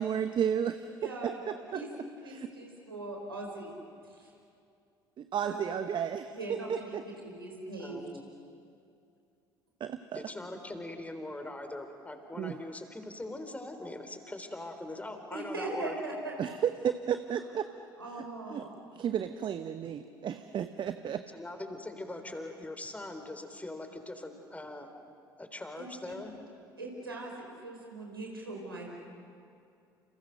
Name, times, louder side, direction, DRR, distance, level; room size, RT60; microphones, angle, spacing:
voice 1, 0.0-0.9 1.2-1.8 2.2-2.5 5.2-7.0 9.8-10.2 12.4-12.5 16.4-17.7 18.1-18.2 18.5-18.7 19.0-21.2, right 8 dB, 40° right, 10 dB, 1.0 m, -33 dB
voice 2, 1.0-1.9 2.2-3.7 4.2-4.3 5.4-5.6 6.3-6.9 7.2-8.0 15.3-16.3 18.0-18.7 25.8-25.9 26.8-27.3 27.6-29.0, right 2 dB, 90° right, -1 dB, 4.9 m, -40 dB
voice 3, 7.8-8.2 10.1-16.0 21.3-24.9 25.4-26.3, left 2 dB, 10° left, 6 dB, 3.7 m, -41 dB
29.0 x 28.5 x 6.6 m, 2.5 s
figure-of-eight pair, 60°, 12 cm